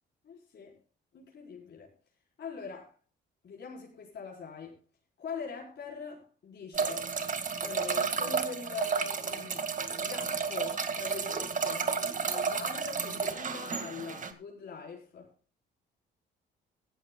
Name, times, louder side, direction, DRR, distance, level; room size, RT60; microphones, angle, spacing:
voice 1, 0.2-0.8 1.1-1.9 2.4-2.9 3.4-4.8 5.2-7.1 7.6-9.7 10.0-11.9 12.2-15.3, left 5 dB, 60° left, 4.4 m, -42 dB
sound 1, 6.7-14.3, right 5 dB, 40° right, 1.9 m, -32 dB
18.0 x 13.5 x 2.3 m
cardioid pair, 90°, 20 cm